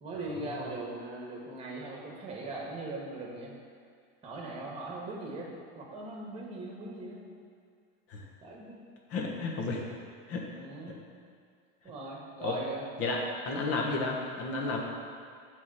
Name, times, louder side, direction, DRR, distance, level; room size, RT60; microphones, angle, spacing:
voice 1, 0.0-3.6 4.2-7.3 8.4-8.8 10.3-11.0 11.8-12.9, right 2 dB, 20° right, -1 dB, 1.5 m, -40 dB
voice 2, 9.1-9.8 10.3-10.4 12.4-12.6 13.0-13.2 13.4-14.8, left 3 dB, 45° left, 0 dB, 1.4 m, -32 dB
7.1 x 4.0 x 6.6 m, 2.2 s
supercardioid pair, 135°, 33 cm